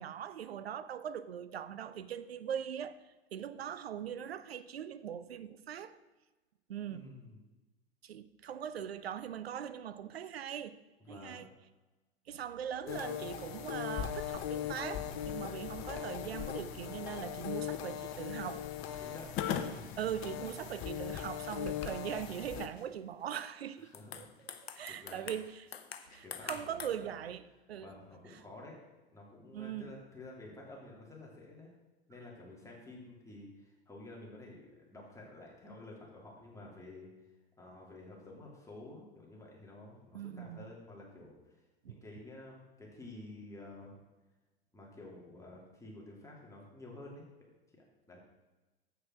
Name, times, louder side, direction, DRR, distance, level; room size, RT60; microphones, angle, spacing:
voice 1, 0.0-3.0 3.3-6.0 6.7-7.0 8.0-10.8 11.1-11.5 12.3-18.7 19.5-19.6 20.0-23.9 24.2-24.3 24.6-25.7 26.0-27.9 29.5-29.9 40.1-40.6 41.8-42.0, right 9 dB, 80° right, 0.6 m, -41 dB
voice 2, 6.9-7.4 11.0-11.4 19.0-19.3 19.7-20.0 23.8-24.2 24.9-25.3 26.2-27.1 27.8-28.8 29.1-31.7 32.1-37.1 37.6-44.0 44.7-47.2 48.1-48.2, left 2 dB, 10° left, 2.8 m, -51 dB
sound 1, 12.9-22.7, left 10 dB, 45° left, 1.0 m, -39 dB
sound 2, 21.6-21.9 22.4-22.9 23.4-23.5 23.9-26.9, left 7 dB, 85° left, 0.8 m, -47 dB
8.1 x 6.4 x 6.2 m
figure-of-eight pair, 90°, 30 cm